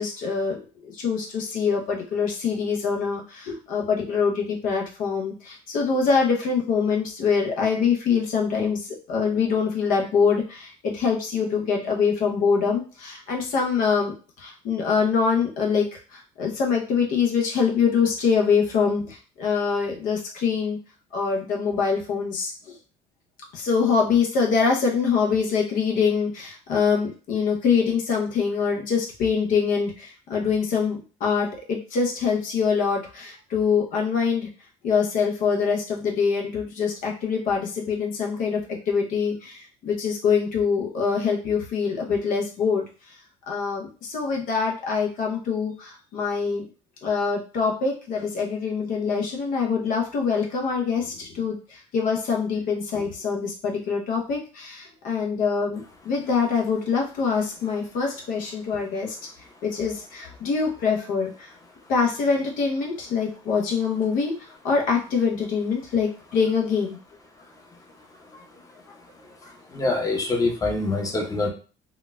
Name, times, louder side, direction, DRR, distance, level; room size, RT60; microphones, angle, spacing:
voice 1, 0.0-20.8 21.1-22.8 23.5-34.5 34.8-42.9 43.5-46.7 47.0-59.2 59.6-61.5 61.9-67.0 68.3-68.4 69.4-69.5, left 5 dB, 65° left, 0 dB, 0.7 m, -24 dB
voice 2, 69.7-71.5, left 2 dB, 25° left, 1 dB, 0.8 m, -24 dB
3.8 x 2.3 x 2.2 m, 0.36 s
supercardioid pair, 85°, 15 cm